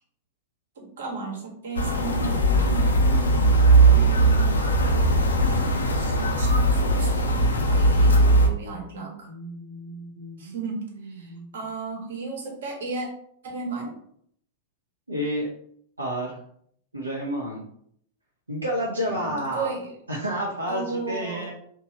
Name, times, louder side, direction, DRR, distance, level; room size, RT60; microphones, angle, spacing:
voice 1, 0.8-2.4 3.9-4.6 5.9-9.3 10.4-13.1 13.4-13.9 19.0-19.9 20.7-21.5, right 4 dB, 65° right, -1 dB, 1.0 m, -34 dB
sound 1, 1.8-8.5, right 2 dB, 80° left, 0.4 m, -19 dB
voice 2, 8.5-11.5 15.1-15.5 16.0-16.4 16.9-17.6 18.5-19.7 20.1-21.5, equal, 90° right, -4 dB, 0.5 m, -31 dB
2.9 x 2.2 x 2.8 m, 0.66 s
figure-of-eight pair, 95°, 0 cm